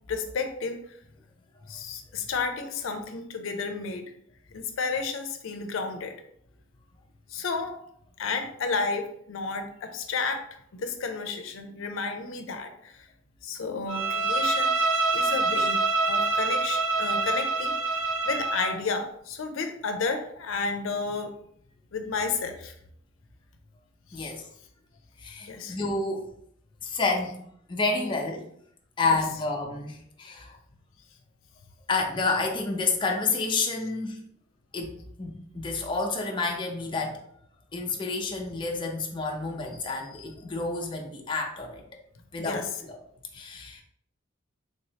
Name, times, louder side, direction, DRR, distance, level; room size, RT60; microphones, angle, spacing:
voice 1, 0.1-0.8 1.7-4.1 4.5-6.1 7.3-7.8 8.2-10.5 10.7-13.1 13.4-14.7 15.1-21.3 21.9-22.7 24.2-24.3 25.5-25.8 29.0-29.2 42.4-42.8, left 4 dB, 85° left, 6 dB, 0.5 m, -32 dB
Bowed string instrument, 13.9-18.8, right 3 dB, 75° right, 0.5 m, -26 dB
voice 2, 24.1-24.5 25.2-26.3 26.8-27.4 27.7-28.4 29.0-30.6 31.9-34.2 34.7-37.2 37.7-41.8 42.3-43.0 43.3-43.8, left 3 dB, 25° left, 1 dB, 0.5 m, -29 dB
3.4 x 3.0 x 2.7 m, 0.70 s
head